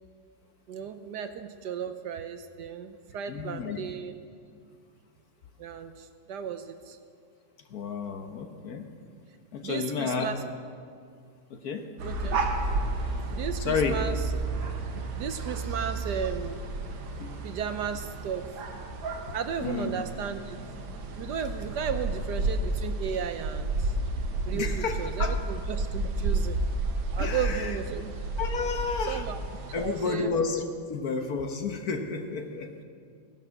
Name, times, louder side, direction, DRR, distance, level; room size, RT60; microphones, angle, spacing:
voice 1, 0.7-4.1 5.6-7.0 9.6-10.4 12.0-12.4 13.3-14.2 15.2-16.6 17.4-18.5 19.3-20.6 21.2-23.9 24.5-26.6 27.1-28.1 29.1-29.4 29.8-30.4, right 7 dB, 70° right, 9 dB, 1.2 m, -34 dB
voice 2, 3.3-3.8 7.7-8.8 9.5-10.3 11.5-11.9 13.6-14.0 17.2-17.4 19.2-19.3 19.6-20.0 24.5-25.4 27.2-27.8 28.4-29.2 29.7-30.6 30.9-32.7, left 5 dB, 55° left, 5 dB, 1.3 m, -31 dB
sound 1, 12.0-30.2, right 2 dB, 90° right, 2.0 m, -32 dB
17.0 x 10.5 x 6.4 m, 2.2 s
omnidirectional pair, 2.1 m